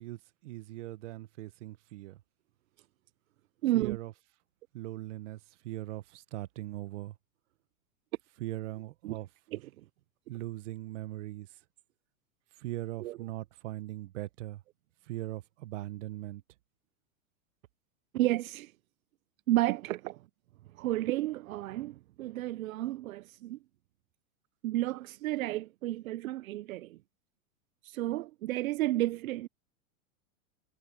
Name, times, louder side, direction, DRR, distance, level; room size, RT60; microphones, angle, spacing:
voice 1, 0.0-2.2 3.7-4.1 4.7-7.2 8.4-9.3 10.3-11.6 12.6-14.6 15.0-16.4, right 16 dB, 60° right, 1.2 m, -40 dB
voice 2, 3.6-4.0 9.0-9.2 9.5-9.7 13.0-13.2 18.1-18.7 19.5-20.2 20.7-23.6 24.6-27.0 27.8-29.5, right 16 dB, 85° right, 0.6 m, -32 dB
supercardioid pair, 155°, 40 cm